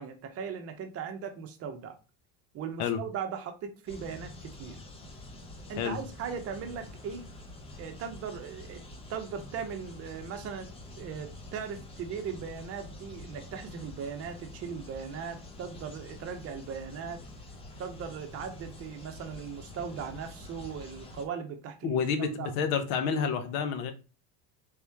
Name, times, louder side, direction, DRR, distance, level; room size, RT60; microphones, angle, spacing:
voice 1, 0.0-2.0 2.5-4.8 5.7-7.2 7.8-8.8 9.1-10.7 11.0-17.2 17.8-22.5, right 6 dB, 30° right, 0.7 m, -38 dB
sound 1, 3.9-21.2, left 2 dB, 15° left, 0.3 m, -47 dB
voice 2, 21.8-23.9, left 6 dB, 70° left, 1.0 m, -29 dB
3.6 x 3.0 x 3.4 m
cardioid pair, 145°, 45 cm